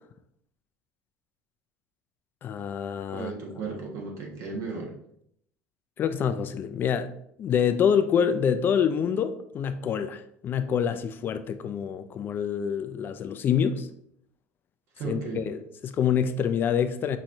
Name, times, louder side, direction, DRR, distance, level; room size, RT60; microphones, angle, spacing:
voice 1, 2.4-3.3 6.0-7.1 7.4-13.9 15.0-17.2, left 7 dB, 40° left, 0.4 m, -26 dB
voice 2, 3.1-4.9 15.0-15.4, right 4 dB, 60° right, 1.5 m, -35 dB
5.6 x 3.0 x 2.6 m
supercardioid pair, 105°, 6 cm